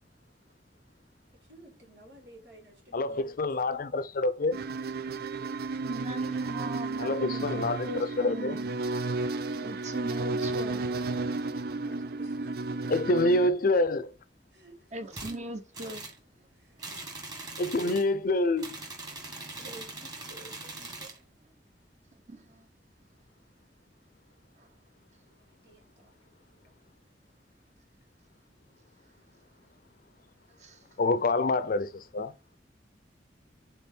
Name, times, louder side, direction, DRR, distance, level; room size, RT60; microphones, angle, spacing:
voice 1, 1.5-3.8 11.8-12.7 13.4-13.5 14.5-14.9 16.5-16.8 19.3-21.1 25.3-26.7 30.7-31.5, right 2 dB, 80° right, 2.8 m, -54 dB
voice 2, 2.9-4.6 7.0-7.9 8.2-8.6 12.9-14.1 17.6-18.8 31.0-32.3, left 2 dB, 55° left, 0.6 m, -27 dB
sound 1, 4.5-13.5, right 3 dB, 60° right, 0.4 m, -33 dB
voice 3, 5.8-8.7 9.6-10.8 14.9-16.1 22.3-22.6 30.6-30.8, right 2 dB, 40° right, 1.0 m, -38 dB
sound 2, 15.1-15.4 15.7-16.2 16.8-18.1 18.6-21.2, right 2 dB, 25° right, 1.6 m, -41 dB
4.3 x 4.0 x 5.3 m
head